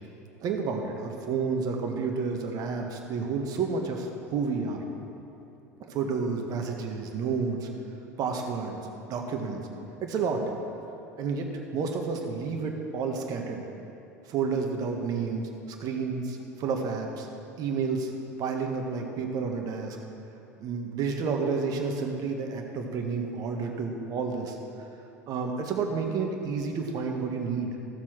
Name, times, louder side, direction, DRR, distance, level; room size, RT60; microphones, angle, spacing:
voice 1, 0.4-4.8 5.9-7.7 8.2-8.8 9.1-9.6 10.0-10.4 11.2-13.7 14.3-15.5 15.8-17.3 17.6-18.1 18.4-20.0 20.6-24.6 25.3-27.7, right 5 dB, 45° right, 3 dB, 1.6 m, -30 dB
15.0 x 7.5 x 6.1 m, 2.9 s
figure-of-eight pair, 75°, 9 cm